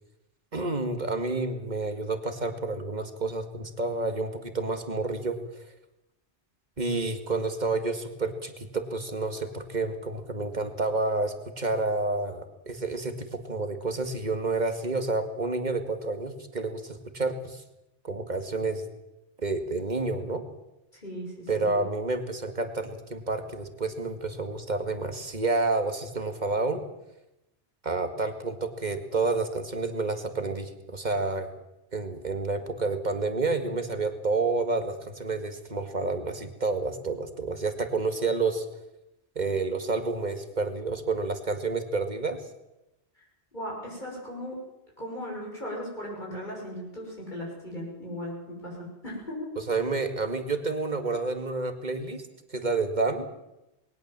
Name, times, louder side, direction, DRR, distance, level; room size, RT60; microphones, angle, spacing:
voice 1, 0.5-5.4 6.8-17.6 18.0-18.8 19.4-20.4 21.5-26.8 27.8-31.5 31.9-38.7 39.4-42.4 49.6-52.2 52.5-53.3, right 3 dB, 40° right, 7 dB, 2.2 m, -29 dB
voice 2, 20.9-21.8 43.5-44.6 45.0-49.5, equal, 45° left, -3 dB, 6.8 m, -37 dB
21.0 x 19.0 x 7.6 m, 0.93 s
omnidirectional pair, 1.2 m